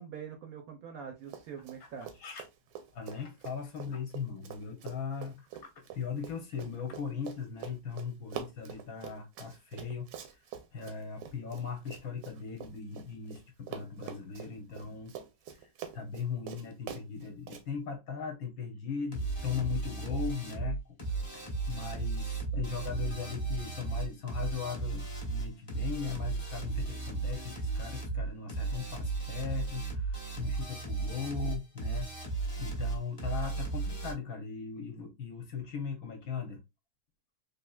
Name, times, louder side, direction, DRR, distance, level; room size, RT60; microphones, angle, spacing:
voice 1, 0.0-2.1, right 7 dB, 65° right, 0.9 m, -44 dB
Run, 1.2-1.8 2.0-13.4 13.7-17.6, right 8 dB, 80° right, 1.3 m, -45 dB
voice 2, 2.9-5.5 5.9-15.1 15.5-32.1 32.6-36.6, left 6 dB, 65° left, 1.1 m, -39 dB
sound 1, 19.1-34.1, right 4 dB, 25° left, 0.9 m, -35 dB
3.5 x 2.7 x 2.3 m
omnidirectional pair, 1.9 m